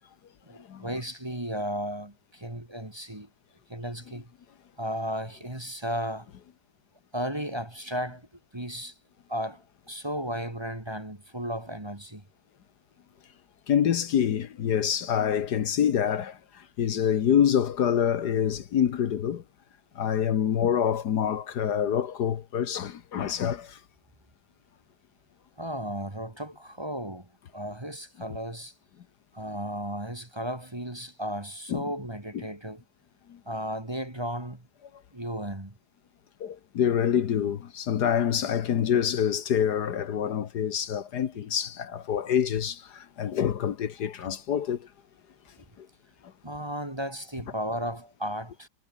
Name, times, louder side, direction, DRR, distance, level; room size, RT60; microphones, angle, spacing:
voice 1, 0.5-3.3 3.7-4.3 4.8-6.3 7.1-8.3 8.5-8.9 9.3-12.2 25.6-28.7 29.3-32.8 33.5-34.7 35.1-35.7 44.2-44.3 46.4-48.7, equal, 15° right, 2.0 m, -34 dB
voice 2, 13.7-16.4 16.8-19.4 19.9-23.8 31.7-31.8 32.3-32.4 33.3-33.4 36.4-44.9 45.8-45.9, left 9 dB, 70° left, 1.7 m, -26 dB
omnidirectional pair, 1.9 m